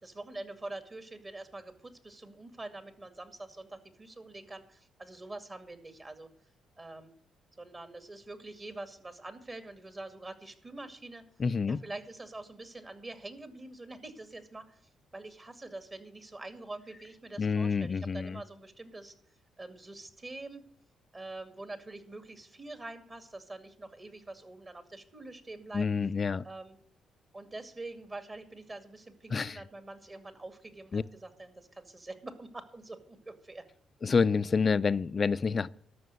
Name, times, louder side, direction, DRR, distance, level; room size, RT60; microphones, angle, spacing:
voice 1, 0.0-6.3 6.8-7.1 7.6-11.3 11.7-14.8 15.1-19.1 19.6-20.6 21.1-25.9 26.4-26.8 27.3-33.6, right 2 dB, 30° right, 2.2 m, -45 dB
voice 2, 11.4-11.8 17.4-18.4 25.7-26.4 29.3-29.6 30.9-31.0 34.0-35.7, left 5 dB, 45° left, 0.5 m, -28 dB
13.0 x 6.1 x 7.9 m
supercardioid pair, 60°, 0 cm